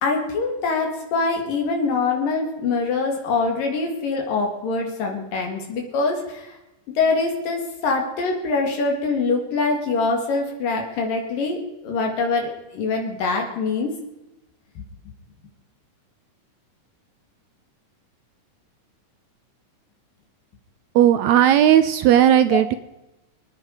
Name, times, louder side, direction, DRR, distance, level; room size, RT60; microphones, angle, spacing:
voice 1, 0.0-6.6 7.0-14.0 14.8-14.9 22.5-22.6, left 4 dB, 85° left, 2 dB, 4.0 m, -24 dB
voice 2, 21.0-22.8, right 11 dB, 80° right, 11 dB, 1.7 m, -15 dB
24.5 x 10.0 x 4.8 m, 0.96 s
omnidirectional pair, 3.8 m